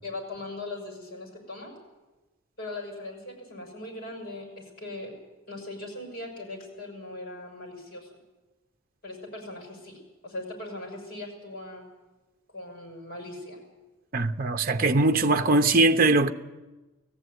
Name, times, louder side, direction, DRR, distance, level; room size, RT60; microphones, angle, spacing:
voice 1, 0.0-1.7 2.6-5.1 5.5-8.1 9.0-11.8 12.5-13.6, left 2 dB, 50° left, 6.3 m, -39 dB
voice 2, 14.1-16.3, right 2 dB, 45° right, 0.8 m, -21 dB
18.5 x 15.0 x 9.4 m
head